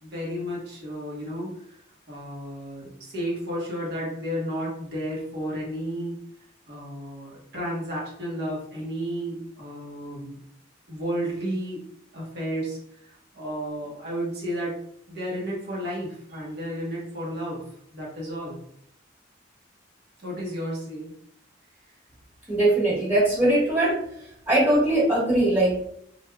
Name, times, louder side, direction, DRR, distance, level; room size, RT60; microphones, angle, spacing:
voice 1, 0.0-1.6 2.1-6.1 6.7-10.4 10.9-11.8 12.1-12.8 13.0-14.7 15.1-17.6 17.9-18.6 20.2-21.1, equal, 55° right, -4 dB, 1.2 m, -32 dB
voice 2, 22.5-24.0 24.5-25.8, right 1 dB, 10° right, -9 dB, 1.3 m, -21 dB
3.2 x 2.6 x 2.3 m, 0.70 s
head